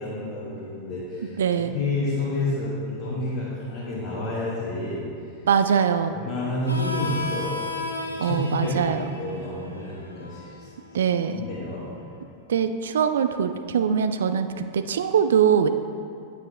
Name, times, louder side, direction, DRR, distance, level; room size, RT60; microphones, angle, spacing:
voice 1, 0.0-1.4 1.7-5.1 6.1-7.6 8.0-11.0 11.3-11.9, left 2 dB, 50° left, -9 dB, 1.6 m, -30 dB
voice 2, 1.4-1.7 5.5-6.2 8.2-9.0 10.9-11.4 12.5-15.7, right 7 dB, 65° right, 9 dB, 0.3 m, -22 dB
Harmonica, 6.6-11.9, left 2 dB, 85° left, 0.7 m, -35 dB
9.3 x 9.0 x 2.2 m, 2.5 s
figure-of-eight pair, 90°, 0 cm